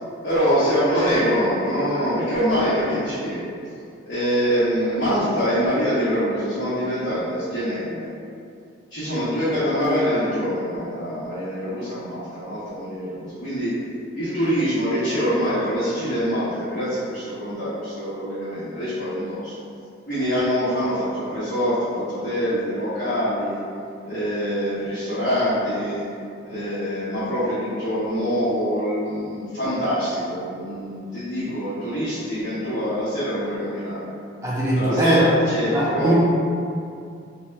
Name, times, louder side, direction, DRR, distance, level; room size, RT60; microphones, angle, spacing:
voice 1, 0.2-3.5 4.0-8.1 8.9-13.7 14.1-19.5 20.1-23.6 24.0-26.0 26.4-34.1 34.7-36.1, equal, 60° left, -14 dB, 0.8 m, -24 dB
voice 2, 34.4-35.2 35.7-36.1, right 1 dB, 15° right, -6 dB, 0.4 m, -20 dB
2.7 x 2.1 x 3.3 m, 2.4 s
head